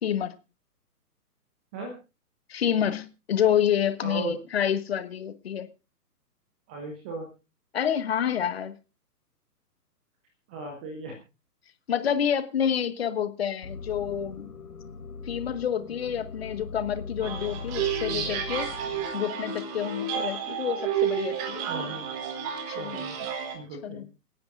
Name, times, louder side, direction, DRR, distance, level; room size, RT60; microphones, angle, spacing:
voice 1, 0.0-0.4 2.5-5.7 7.7-8.7 11.9-14.5 15.3-18.7 19.1-21.9 22.7-23.0 23.8-24.0, left 9 dB, 40° left, 1.4 m, -28 dB
voice 2, 4.0-4.4 6.7-7.3 10.5-11.2 18.1-18.3 21.7-22.1 22.7-23.2 23.5-24.1, right 3 dB, 5° right, 0.6 m, -36 dB
sound 1, 13.6-19.1, left 5 dB, 65° left, 2.9 m, -40 dB
sound 2, 17.2-23.5, right 7 dB, 25° right, 2.9 m, -31 dB
27.5 x 10.5 x 2.5 m
figure-of-eight pair, 130°, 48 cm